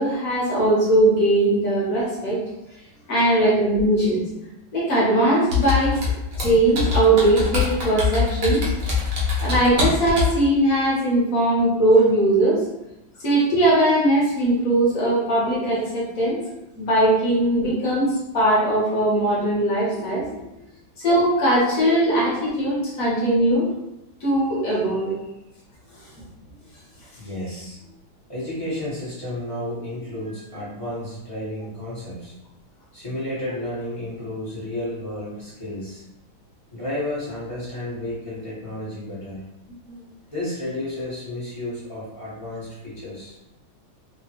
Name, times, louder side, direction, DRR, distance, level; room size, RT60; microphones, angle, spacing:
voice 1, 0.0-2.4 3.1-4.2 4.7-5.9 6.4-8.6 9.4-12.6 13.2-16.4 16.8-20.2 21.0-23.7 24.2-25.1 39.9-40.0, right 1 dB, 55° left, -6 dB, 1.1 m, -20 dB
Computer keyboard, 5.5-10.4, left 5 dB, 60° right, 1.3 m, -23 dB
voice 2, 19.9-20.5 25.9-26.1 26.9-27.9 28.3-32.4 32.9-36.0 36.7-39.4 40.3-43.4, left 1 dB, 30° left, -10 dB, 0.6 m, -32 dB
3.5 x 2.1 x 2.8 m, 0.89 s
omnidirectional pair, 2.2 m